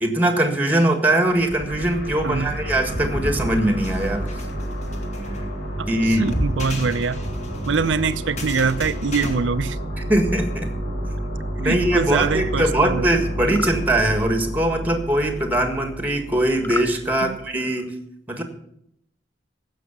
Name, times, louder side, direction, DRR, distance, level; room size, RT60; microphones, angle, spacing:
voice 1, 0.0-4.3 5.9-6.3 10.1-10.7 11.6-17.9 18.3-18.4, right 1 dB, 10° right, 6 dB, 1.7 m, -21 dB
sound 1, 1.2-17.4, right 1 dB, 80° left, 4.6 m, -30 dB
voice 2, 2.2-2.6 6.1-7.2 7.7-9.8 11.6-13.1 17.2-17.4, right 5 dB, 80° right, 14 dB, 0.6 m, -23 dB
sound 2, 2.9-9.3, equal, 40° left, 2.2 m, -32 dB
sound 3, 13.4-13.8 16.6-16.9, left 2 dB, 10° left, 0.5 m, -30 dB
16.0 x 6.5 x 7.2 m, 0.74 s
head